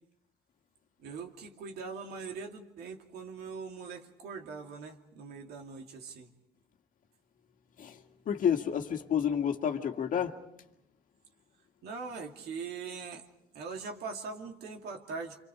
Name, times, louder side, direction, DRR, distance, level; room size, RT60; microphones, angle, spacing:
voice 1, 1.0-6.3 11.8-13.2 13.5-15.4, right 5 dB, 70° right, 2.5 m, -41 dB
voice 2, 8.3-10.4, left 8 dB, 50° left, 1.8 m, -29 dB
28.0 x 26.0 x 4.9 m
cardioid pair, 110°, 17 cm